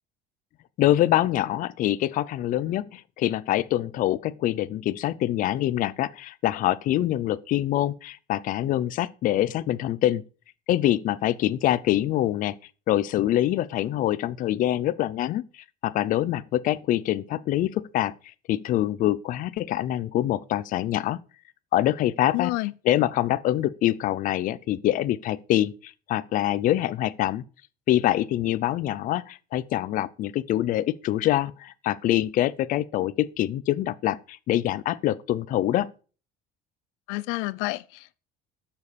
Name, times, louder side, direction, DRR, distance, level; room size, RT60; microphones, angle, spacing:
voice 1, 0.8-10.2 10.7-12.6 12.9-15.4 15.8-18.1 18.5-21.2 21.7-22.5 22.8-27.4 27.9-35.9, left 13 dB, 45° left, 0.6 m, -25 dB
voice 2, 22.3-22.7 37.1-38.2, left 21 dB, 90° left, 0.6 m, -29 dB
12.5 x 6.8 x 6.8 m
cardioid pair, 165°, 20 cm